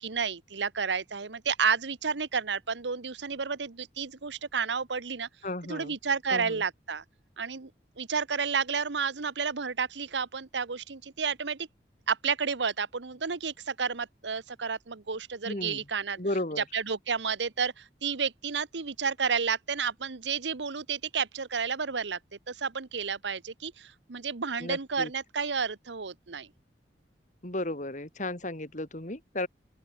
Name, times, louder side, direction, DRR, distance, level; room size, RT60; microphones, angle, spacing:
voice 1, 0.0-5.3 5.7-7.0 7.4-7.7 8.0-11.7 12.1-16.2 16.7-22.2 22.5-26.5, right 5 dB, 85° right, 1.1 m, -31 dB
voice 2, 5.4-5.9 6.3-6.6 15.5-15.8 16.2-16.6 24.6-25.1 27.4-29.5, left 1 dB, 45° left, 3.6 m, -34 dB
open air
head